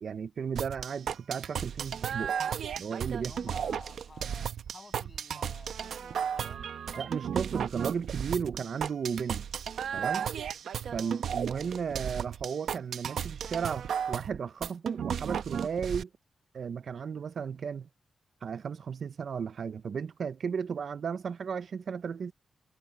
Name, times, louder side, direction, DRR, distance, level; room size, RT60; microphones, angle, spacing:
voice 1, 0.0-2.3 2.8-3.3 7.0-9.5 9.9-10.3 10.9-16.1 16.5-17.9 18.4-22.3, right 6 dB, 50° right, 0.4 m, -34 dB
sound 1, 0.6-16.0, right 8 dB, 85° right, 0.8 m, -34 dB
voice 2, 3.2-7.1 10.9-11.2, left 4 dB, 30° left, 7.2 m, -52 dB
wide cardioid pair, 180°, 0 cm